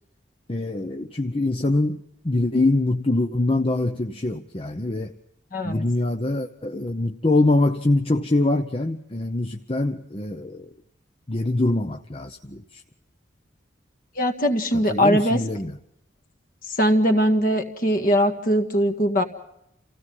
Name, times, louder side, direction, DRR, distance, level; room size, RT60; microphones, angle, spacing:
voice 1, 0.5-5.1 5.6-10.7 11.3-12.8 14.9-15.8, left 2 dB, 30° left, 5 dB, 0.8 m, -24 dB
voice 2, 5.5-5.8 14.2-15.4 16.6-19.2, equal, 45° left, 6 dB, 1.9 m, -21 dB
28.5 x 16.5 x 5.5 m, 0.80 s
head